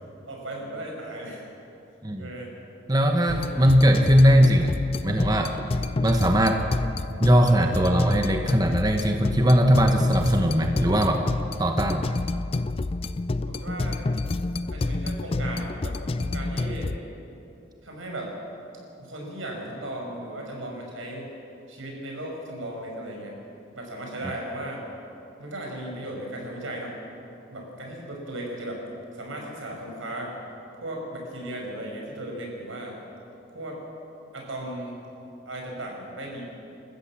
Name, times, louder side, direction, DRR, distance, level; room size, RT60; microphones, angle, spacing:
voice 1, 0.2-1.5 2.2-2.5 3.2-3.6 13.5-14.0 14.7-16.9 17.8-18.4 19.0-21.3 21.7-23.3 23.7-24.8 25.4-27.0 27.5-28.8 29.1-30.4 30.8-32.9 33.5-33.8 34.3-35.0 35.4-36.4, right 1 dB, 85° right, 0 dB, 5.9 m, -36 dB
voice 2, 2.9-4.7 5.0-5.6 6.0-6.7 7.2-11.2 11.6-12.1, equal, 20° right, 3 dB, 1.0 m, -20 dB
sound 1, 3.3-17.0, left 2 dB, 30° left, 0.4 m, -29 dB
27.5 x 14.5 x 7.4 m, 2.8 s
head